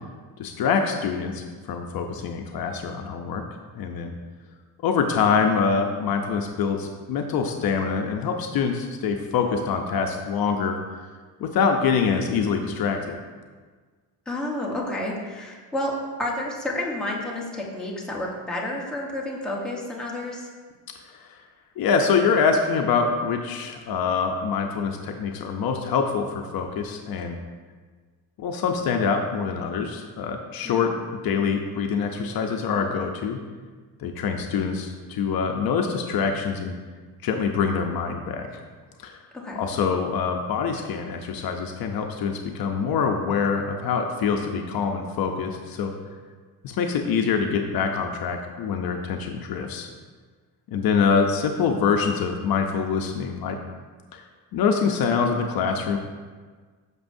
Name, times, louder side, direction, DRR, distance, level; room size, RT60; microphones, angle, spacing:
voice 1, 0.4-3.4 3.7-4.1 4.8-10.8 11.4-13.2 21.1-21.3 21.8-27.4 28.4-33.4 34.0-36.7 37.2-38.5 39.0-39.1 39.6-45.9 46.6-49.9 50.7-53.6 54.1-54.2 54.5-56.0, left 6 dB, 60° left, 3 dB, 0.7 m, -25 dB
voice 2, 14.3-20.5 30.6-31.0 39.3-39.6, left 1 dB, ahead, -4 dB, 1.2 m, -30 dB
10.5 x 6.2 x 2.7 m, 1.5 s
cardioid pair, 150°, 41 cm